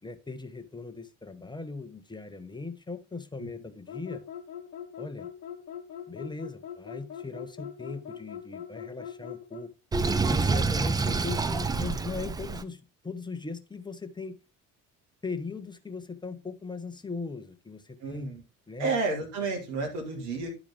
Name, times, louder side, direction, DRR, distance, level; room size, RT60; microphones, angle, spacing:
voice 1, 0.0-4.2 5.0-5.3 6.1-9.7 10.3-14.4 15.2-18.3 18.7-19.0, left 4 dB, 10° left, 10 dB, 0.9 m, -39 dB
sound 1, 3.9-9.7, left 9 dB, 80° left, 0.9 m, -41 dB
Sink (filling or washing), 9.9-12.6, right 4 dB, 10° right, 0.3 m, -27 dB
voice 2, 18.0-18.4 18.8-20.5, right 3 dB, 65° right, 2 dB, 2.0 m, -31 dB
10.0 x 4.9 x 3.5 m, 0.29 s
figure-of-eight pair, 50°, 45 cm